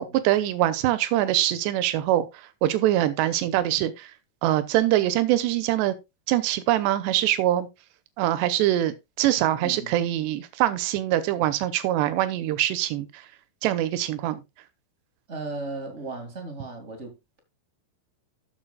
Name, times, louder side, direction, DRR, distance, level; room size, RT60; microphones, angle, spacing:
voice 1, 0.0-2.3 2.6-4.1 4.4-6.0 6.3-7.7 8.2-13.2 13.6-14.4, right 13 dB, 85° right, 3.1 m, -23 dB
voice 2, 9.6-9.9 15.3-17.4, right 3 dB, 30° right, 1.4 m, -36 dB
13.5 x 7.1 x 2.3 m
omnidirectional pair, 4.9 m